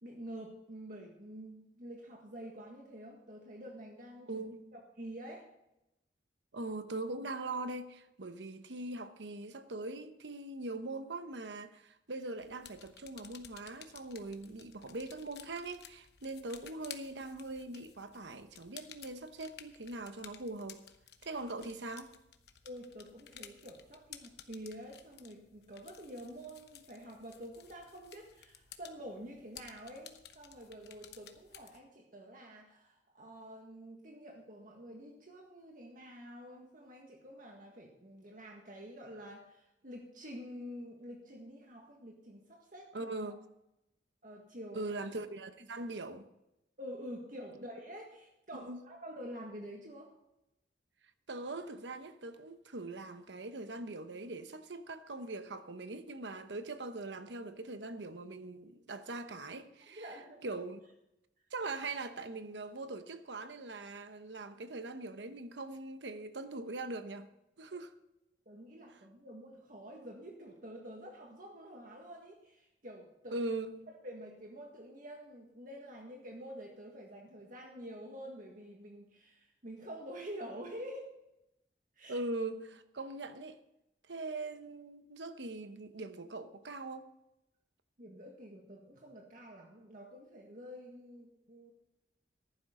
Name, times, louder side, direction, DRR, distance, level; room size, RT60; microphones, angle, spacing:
voice 1, 0.0-4.4 4.7-5.5 22.6-43.1 44.2-44.9 46.8-50.1 59.9-60.5 68.5-73.4 74.0-81.1 82.0-82.2 88.0-91.7, equal, 50° right, 1.7 m, -48 dB
voice 2, 4.3-4.7 6.5-20.9 21.2-22.1 42.9-43.4 44.7-46.3 48.6-48.8 51.3-60.1 60.4-60.8 61.5-68.0 73.3-73.9 82.1-83.6 84.1-87.1, right 2 dB, 85° right, 1.0 m, -41 dB
sound 1, 12.4-31.8, left 9 dB, 65° left, 1.0 m, -55 dB
14.5 x 11.5 x 3.8 m
head